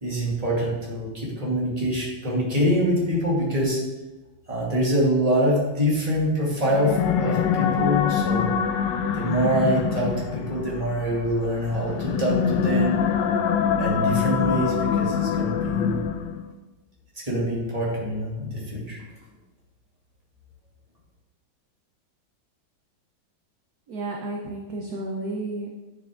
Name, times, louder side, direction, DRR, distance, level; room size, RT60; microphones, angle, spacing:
voice 1, 0.0-3.8 4.5-8.5 9.1-13.0 13.8-16.0 17.2-19.0, equal, 20° right, -5 dB, 2.4 m, -25 dB
sound 1, 6.6-16.5, left 7 dB, 75° left, 1.3 m, -25 dB
voice 2, 23.9-25.7, right 2 dB, 60° right, 0 dB, 1.3 m, -32 dB
9.2 x 7.0 x 3.7 m, 1.1 s
omnidirectional pair, 2.1 m